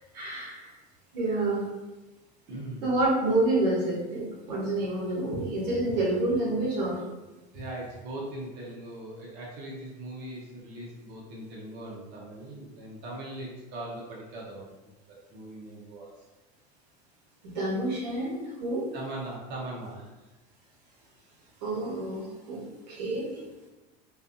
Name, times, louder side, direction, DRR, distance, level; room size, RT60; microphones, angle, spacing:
voice 1, 0.1-0.7 1.1-1.7 2.8-7.0 17.4-18.9 21.6-23.4, right 2 dB, 85° right, -4 dB, 0.9 m, -28 dB
voice 2, 2.5-3.0 7.5-14.7 15.3-16.1 18.9-20.0, right 1 dB, 55° right, -4 dB, 0.8 m, -40 dB
2.5 x 2.5 x 2.5 m, 1.1 s
supercardioid pair, 100°, 21 cm